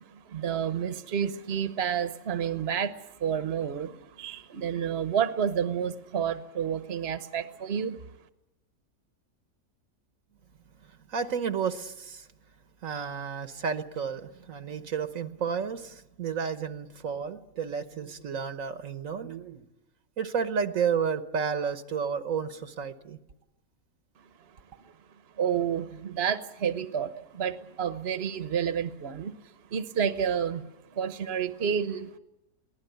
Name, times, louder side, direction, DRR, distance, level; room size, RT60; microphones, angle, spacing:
voice 1, 0.1-8.0 25.4-29.3 29.7-30.6 30.9-32.2, right 8 dB, 50° right, 10 dB, 1.2 m, -30 dB
voice 2, 11.1-12.3 12.8-19.7 20.2-23.2, right 6 dB, 70° right, 10 dB, 1.5 m, -31 dB
23.5 x 17.0 x 9.2 m, 0.89 s
omnidirectional pair, 1.5 m